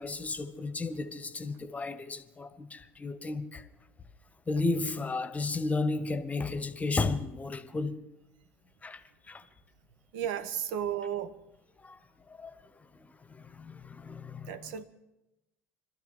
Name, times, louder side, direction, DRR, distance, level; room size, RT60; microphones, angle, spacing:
voice 1, 0.0-3.6 4.5-8.0 8.8-9.0 9.3-9.4 11.8-12.0 12.4-12.5 13.3-14.7, left 3 dB, 20° left, 1.2 m, -33 dB
voice 2, 10.1-11.4 14.4-14.8, right 9 dB, 60° right, 1.1 m, -33 dB
25.5 x 13.5 x 3.9 m
figure-of-eight pair, 65°, 7 cm